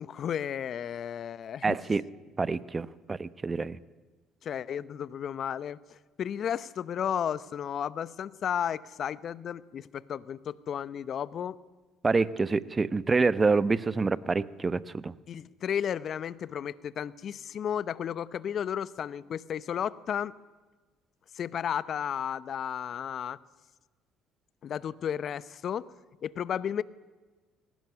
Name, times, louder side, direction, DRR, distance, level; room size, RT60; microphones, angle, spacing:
voice 1, 0.0-1.8 4.4-5.8 6.2-11.6 15.3-20.3 21.3-23.4 24.6-25.9 26.2-26.8, left 9 dB, 55° left, 19 dB, 0.8 m, -33 dB
voice 2, 1.6-2.0 2.4-3.8 12.0-15.1, right 4 dB, 30° right, 17 dB, 0.9 m, -27 dB
22.0 x 18.5 x 9.6 m, 1.3 s
hypercardioid pair, 55°, 0 cm